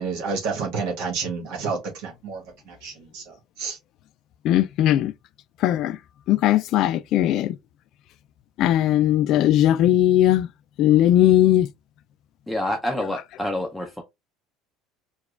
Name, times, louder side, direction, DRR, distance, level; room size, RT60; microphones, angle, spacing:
voice 1, 0.0-3.8, right 5 dB, 75° right, 1.3 m, -30 dB
voice 2, 4.4-5.1 5.6-6.0 6.3-7.5 8.6-10.5 10.8-11.7, left 12 dB, 60° left, 0.3 m, -18 dB
voice 3, 12.5-14.0, left 1 dB, 5° left, 0.5 m, -27 dB
4.6 x 2.3 x 2.3 m
cardioid pair, 120°, 0 cm